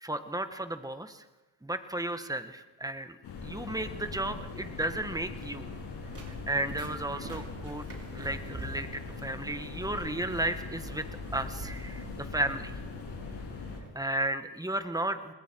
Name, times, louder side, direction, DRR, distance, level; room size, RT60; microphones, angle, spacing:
voice 1, 0.0-1.2 1.6-3.2 3.4-5.7 6.3-7.8 8.1-11.1 11.3-12.7 13.9-15.3, right 1 dB, 10° right, 9 dB, 1.8 m, -34 dB
sound 1, 3.2-13.8, left 4 dB, 85° left, 7.9 m, -41 dB
sound 2, 5.7-13.1, right 2 dB, 35° right, 4.9 m, -47 dB
28.5 x 20.5 x 4.8 m, 1.1 s
cardioid pair, 70°, 40 cm